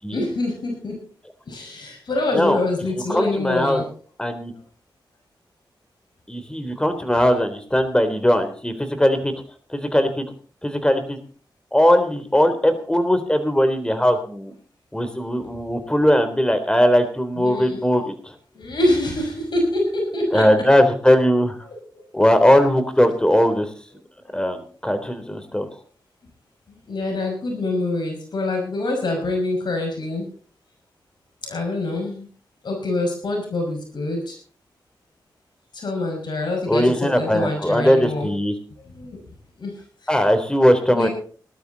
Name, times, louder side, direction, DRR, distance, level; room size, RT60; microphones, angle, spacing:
voice 1, 0.1-1.0 1.5-3.9 17.4-17.8 18.5-20.4 21.9-22.0 25.5-25.7 26.7-30.3 31.4-32.3 32.6-34.4 35.7-38.3 38.9-39.2 39.6-39.7 40.0-40.1 40.9-41.1, left 2 dB, 70° left, 1 dB, 5.9 m, -25 dB
voice 2, 3.0-3.8 4.2-4.5 6.3-9.3 9.7-10.2 10.6-11.2 11.7-14.5 14.9-18.3 20.3-21.6 22.1-23.7 24.3-25.7 36.7-38.5 40.1-41.1, equal, 10° left, 8 dB, 3.6 m, -19 dB
19.5 x 12.0 x 4.1 m, 0.43 s
cardioid pair, 50°, 8 cm